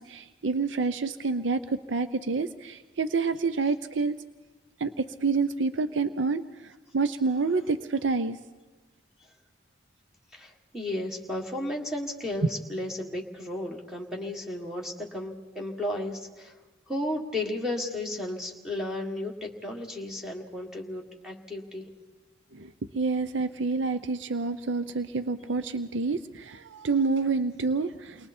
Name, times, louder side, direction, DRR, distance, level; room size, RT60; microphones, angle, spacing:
voice 1, 0.0-4.2 4.8-8.4 22.5-28.3, right 4 dB, 85° right, 11 dB, 0.7 m, -28 dB
voice 2, 10.3-16.5 16.9-21.9, left 1 dB, 5° right, 0 dB, 1.7 m, -34 dB
29.5 x 22.5 x 4.4 m, 1.2 s
head